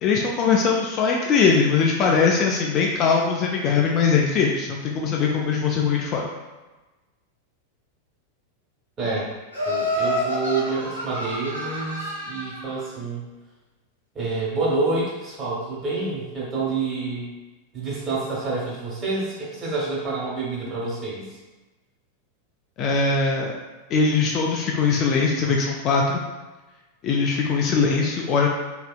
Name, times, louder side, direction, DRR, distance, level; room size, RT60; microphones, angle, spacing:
voice 1, 0.0-6.2 22.8-23.6 23.9-26.2 27.0-28.5, left 5 dB, 35° left, -1 dB, 0.4 m, -21 dB
voice 2, 9.0-9.3 9.6-13.3 14.1-17.3 17.7-21.3, right 3 dB, 25° right, -7 dB, 1.3 m, -28 dB
Laughter, 9.5-12.7, equal, 90° left, 0.9 m, -28 dB
3.2 x 2.7 x 2.3 m, 1.2 s
figure-of-eight pair, 90°, 0 cm